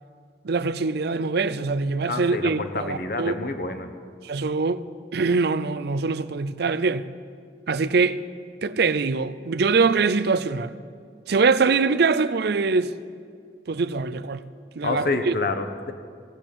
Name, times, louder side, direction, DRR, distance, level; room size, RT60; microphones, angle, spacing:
voice 1, 0.4-3.4 4.2-4.8 5.1-7.1 7.7-8.2 8.6-10.7 11.3-12.9 13.7-14.4 14.8-15.3, right 4 dB, 60° right, 0.5 m, -23 dB
voice 2, 2.1-3.9 14.8-15.9, left 3 dB, 55° left, 1.2 m, -28 dB
17.0 x 8.8 x 8.5 m
head